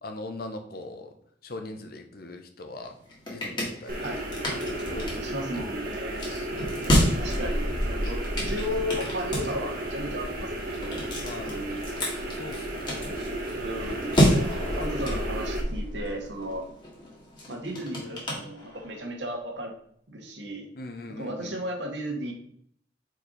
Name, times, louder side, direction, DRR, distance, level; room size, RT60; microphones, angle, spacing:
voice 1, 0.0-1.1 1.4-2.9 3.3-4.1 4.7-5.3 6.1-7.4 11.2-11.5 12.3-13.0 20.7-21.5, left 2 dB, 55° left, 5 dB, 0.9 m, -41 dB
sound 1, 2.8-19.1, equal, 25° left, 1.7 m, -30 dB
sound 2, 3.9-15.6, right 1 dB, 50° right, 1.4 m, -34 dB
voice 2, 5.2-6.3 6.9-11.8 13.5-16.7 17.5-19.7 20.1-20.7 21.1-22.3, equal, 70° right, 1 dB, 1.6 m, -35 dB
4.7 x 4.5 x 5.1 m, 0.65 s
head